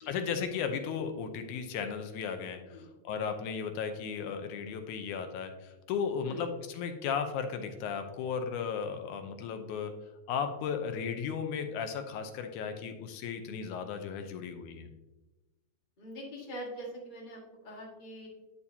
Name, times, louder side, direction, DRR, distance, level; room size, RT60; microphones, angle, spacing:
voice 1, 0.1-2.8 3.0-9.9 10.3-14.9, left 6 dB, 90° left, 7 dB, 2.2 m, -35 dB
voice 2, 16.0-18.3, equal, 25° left, -2 dB, 0.9 m, -43 dB
8.6 x 6.8 x 2.7 m, 1.1 s
omnidirectional pair, 3.4 m